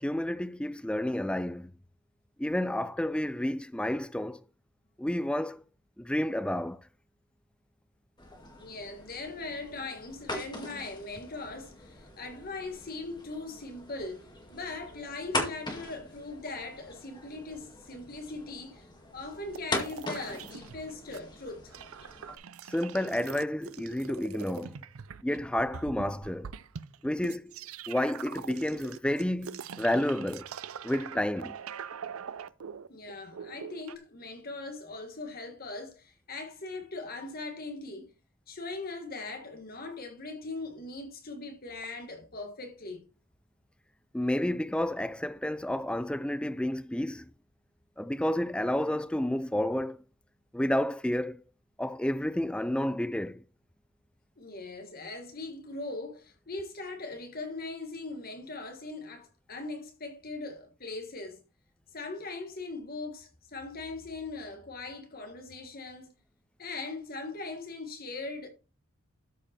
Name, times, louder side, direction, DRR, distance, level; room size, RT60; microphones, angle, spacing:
voice 1, 0.0-1.7 2.4-4.4 5.0-5.6 6.0-6.8 22.7-24.8 25.2-26.5 27.0-27.6 27.9-30.5 30.8-31.6 44.1-47.3 48.0-50.0 50.5-51.4 51.8-53.4, left 1 dB, 5° left, 0.4 m, -30 dB
sound 1, 8.2-22.4, left 2 dB, 20° left, 2.0 m, -41 dB
voice 2, 8.6-18.8 19.1-21.8 32.9-38.1 38.5-43.0 54.4-61.4 61.9-66.1 66.6-68.5, left 3 dB, 45° left, 1.6 m, -40 dB
sound 2, 19.5-21.2 21.5-34.0, right 7 dB, 80° right, 0.5 m, -43 dB
13.0 x 5.2 x 4.3 m
head